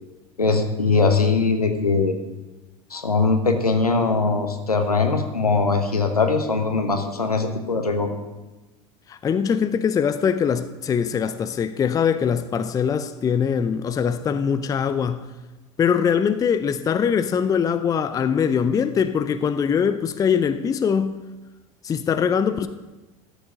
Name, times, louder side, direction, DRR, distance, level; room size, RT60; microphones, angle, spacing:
voice 1, 0.4-2.1 2.9-8.1, left 4 dB, 85° left, 1.1 m, -21 dB
voice 2, 9.1-15.2 15.8-21.2 21.8-22.7, left 7 dB, 20° left, 0.5 m, -22 dB
13.0 x 7.0 x 5.2 m
figure-of-eight pair, 80°, 19 cm